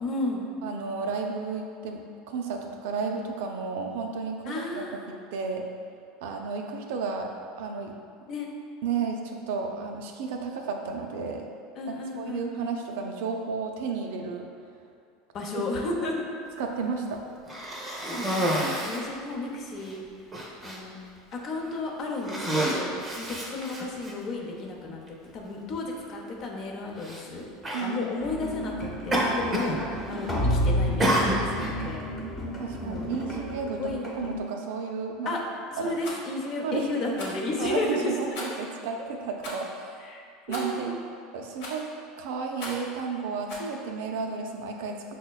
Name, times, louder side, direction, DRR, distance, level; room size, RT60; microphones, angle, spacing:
voice 1, 0.0-0.4 4.4-5.1 8.3-8.5 11.8-12.8 15.3-16.2 18.1-20.0 20.6-21.0 21.3-22.9 23.2-25.0 25.3-27.5 27.8-32.1 32.8-33.1 33.8-34.1 35.3-35.4 35.7-38.1 40.0-40.9, left 2 dB, 45° left, -1 dB, 0.6 m, -33 dB
voice 2, 0.6-2.0 2.3-5.0 5.3-5.7 6.2-7.3 7.6-7.9 8.8-11.5 11.9-14.5 15.5-15.6 16.0-16.1 16.6-17.2 27.7-28.0 32.6-35.3 35.8-36.0 36.6-36.9 37.6-39.9 40.5-41.0 41.3-45.1, right 5 dB, 75° right, 3 dB, 0.4 m, -32 dB
Cough, 17.5-19.1 19.8-19.9 20.3-20.8 21.5-21.8 22.2-24.1 25.1-25.2 27.0-27.2 27.6-27.9 29.1-29.8 30.1-30.5 31.0-31.8, right 1 dB, 20° right, 0.7 m, -28 dB
sound 1, 28.2-34.4, equal, 25° left, 0.9 m, -31 dB
Rattle, 36.0-36.2 37.1-37.4 38.3-38.7 39.4-39.6 40.5-40.8 41.6-41.9 42.6-42.9 43.5-43.7, left 2 dB, 70° left, 0.9 m, -38 dB
5.9 x 2.1 x 2.3 m, 2.3 s
supercardioid pair, 105°, 0 cm